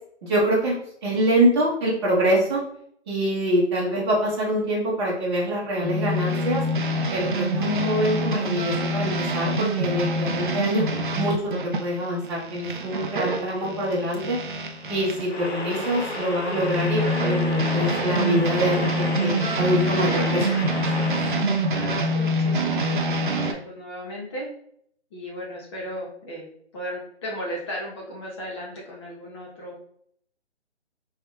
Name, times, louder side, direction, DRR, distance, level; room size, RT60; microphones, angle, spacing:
voice 1, 0.2-0.7 1.0-2.6 3.1-6.6 7.1-14.4 14.9-20.7, equal, 25° right, -6 dB, 1.2 m, -25 dB
sound 1, 5.8-15.3 15.7-23.5, equal, 45° right, 0.5 m, -26 dB
sound 2, 14.1-21.6, left 2 dB, 75° left, 1.4 m, -34 dB
voice 2, 21.7-24.5 25.1-26.5 26.7-29.7, equal, 25° left, -3 dB, 1.1 m, -35 dB
4.9 x 3.3 x 2.4 m, 0.65 s
figure-of-eight pair, 150°, 34 cm